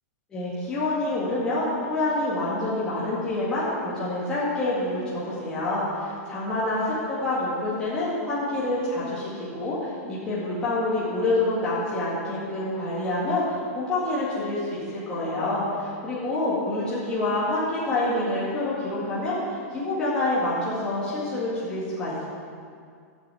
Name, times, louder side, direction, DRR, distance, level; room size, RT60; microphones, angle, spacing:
voice 1, 0.3-19.4 19.7-22.2, left 2 dB, 10° left, -10 dB, 1.9 m, -27 dB
8.1 x 7.2 x 8.2 m, 2.2 s
supercardioid pair, 170°, 8 cm